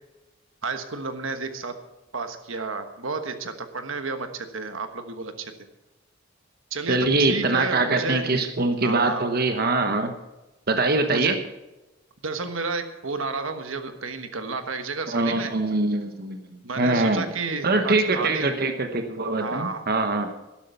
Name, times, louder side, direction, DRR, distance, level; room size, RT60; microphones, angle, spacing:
voice 1, 0.6-1.8 2.1-5.5 6.7-8.2 8.8-9.2 11.1-11.4 12.2-15.5 16.6-18.5 19.4-19.8, right 4 dB, 80° right, 8 dB, 1.3 m, -31 dB
voice 2, 6.9-10.1 10.7-11.4 15.1-16.4 16.8-17.3 17.6-20.3, right 2 dB, 50° right, 6 dB, 1.1 m, -23 dB
12.0 x 12.0 x 5.7 m, 1.1 s
head